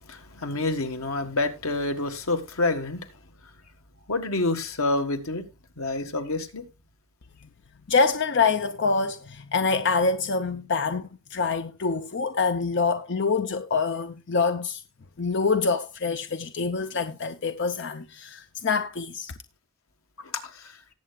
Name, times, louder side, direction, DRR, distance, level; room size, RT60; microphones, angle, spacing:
voice 1, 0.1-3.1 4.1-5.5 5.8-6.6 20.2-20.7, left 2 dB, 85° left, 1.6 m, -28 dB
voice 2, 7.9-14.8 15.2-19.3, left 4 dB, 55° left, 0.6 m, -25 dB
18.5 x 7.8 x 2.4 m
head